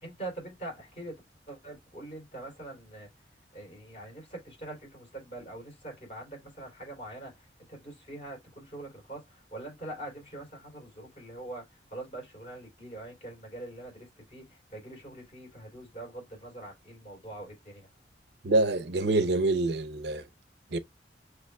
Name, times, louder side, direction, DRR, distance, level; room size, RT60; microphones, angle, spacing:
voice 1, 0.0-1.2 1.5-3.1 3.5-17.9, right 2 dB, 35° left, 3.4 m, -43 dB
voice 2, 18.4-20.3 20.7-20.8, right 2 dB, 65° right, 0.7 m, -26 dB
6.3 x 3.1 x 2.2 m
head